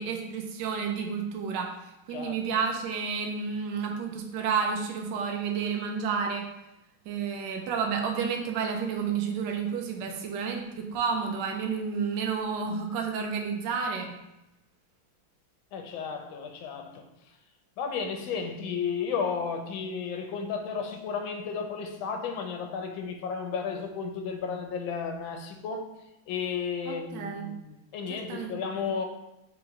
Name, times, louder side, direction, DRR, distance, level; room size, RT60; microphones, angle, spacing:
voice 1, 0.0-6.5 7.1-14.1 26.9-27.5 28.1-28.9, right 6 dB, 70° right, 1.1 m, -31 dB
voice 2, 15.7-17.0 17.8-25.9 26.3-29.1, left 6 dB, 80° left, 1.4 m, -33 dB
3.9 x 3.0 x 4.6 m
omnidirectional pair, 2.2 m